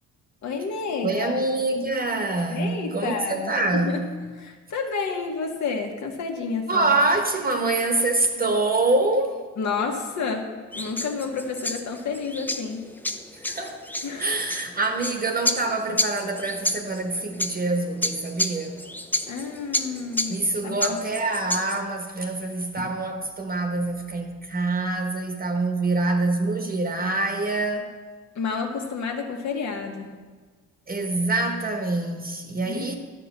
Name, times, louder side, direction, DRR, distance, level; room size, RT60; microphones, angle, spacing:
voice 1, 0.4-1.4 2.5-4.0 4.4-6.9 9.6-12.8 14.0-14.3 19.3-20.4 20.6-21.0 28.3-30.1 32.6-33.0, left 5 dB, 65° left, 1.6 m, -30 dB
voice 2, 1.0-4.0 6.7-9.4 13.3-13.8 14.2-18.8 20.3-27.9 30.9-32.9, right 2 dB, 30° right, 1.1 m, -25 dB
sound 1, 10.7-21.8, left 1 dB, 5° left, 0.5 m, -31 dB
11.5 x 5.3 x 7.3 m
cardioid pair, 90°, 30 cm